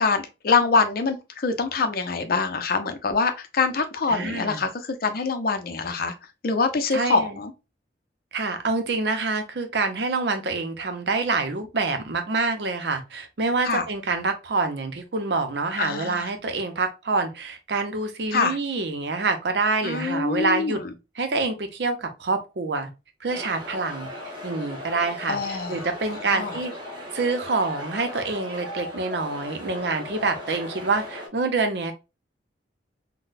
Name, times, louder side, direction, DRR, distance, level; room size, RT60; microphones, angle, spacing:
voice 1, 0.0-6.1 6.4-7.5 13.6-13.8 15.8-16.3 18.3-18.6 19.8-20.9 25.3-25.8 26.3-26.6, left 4 dB, 55° left, 0.5 m, -24 dB
voice 2, 4.1-4.6 6.9-7.3 8.3-20.8 21.2-22.9 23.2-24.1 24.4-26.7 27.1-31.9, right 3 dB, 70° right, 0.7 m, -26 dB
sound 1, 23.3-31.3, left 1 dB, 30° right, 1.5 m, -37 dB
3.8 x 2.1 x 2.5 m
head